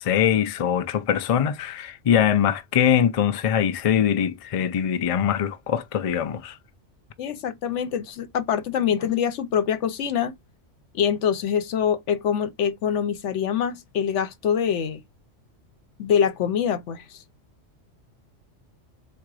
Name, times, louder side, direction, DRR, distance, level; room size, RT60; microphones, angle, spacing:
voice 1, 0.0-6.6, left 9 dB, 60° left, 0.3 m, -22 dB
voice 2, 7.2-10.3 10.9-15.0 16.0-17.0, left 8 dB, 75° left, 1.0 m, -24 dB
3.8 x 2.7 x 4.7 m
omnidirectional pair, 1.2 m